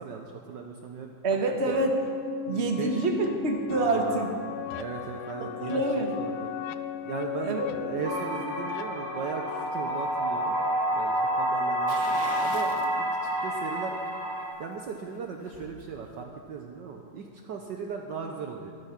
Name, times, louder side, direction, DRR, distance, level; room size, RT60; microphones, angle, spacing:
voice 1, 0.0-1.1 1.7-1.8 2.4-3.1 3.8-4.4 4.8-5.8 6.2-6.5 7.0-10.6 10.9-12.0 12.4-14.2 14.6-18.7, right 6 dB, 65° right, 2 dB, 1.4 m, -37 dB
voice 2, 1.2-2.0 2.5-4.3 5.4-6.1 7.4-7.7, right 2 dB, 35° right, 2 dB, 1.5 m, -27 dB
sound 1, 1.7-9.7, left 10 dB, 90° left, 1.5 m, -36 dB
sound 2, 8.0-14.5, right 1 dB, 80° right, 4.3 m, -29 dB
sound 3, 11.9-12.9 13.4-13.5 15.0-15.8 16.1-16.2, left 4 dB, 60° left, 1.8 m, -41 dB
14.0 x 13.0 x 5.9 m, 2.2 s
omnidirectional pair, 2.3 m